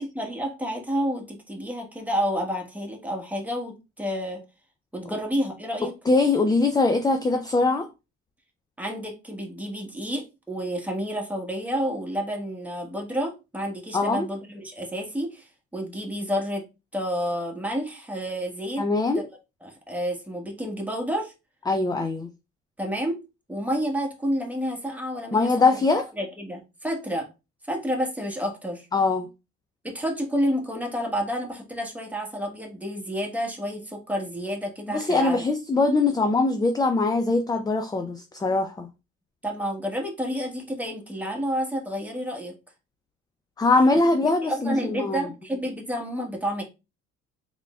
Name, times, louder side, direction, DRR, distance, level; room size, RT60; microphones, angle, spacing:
voice 1, 0.0-4.4 4.9-5.9 8.8-16.6 16.9-18.9 19.1-21.3 22.8-25.5 26.2-27.3 27.6-28.9 29.8-35.4 39.4-42.5 44.4-46.6, equal, 5° right, 1.3 m, -30 dB
voice 2, 6.1-7.9 13.9-14.3 18.8-19.2 21.7-22.3 25.3-26.0 28.9-29.3 34.9-38.9 43.6-45.2, left 3 dB, 15° left, 0.4 m, -22 dB
3.6 x 3.5 x 2.3 m
supercardioid pair, 75°, 30 cm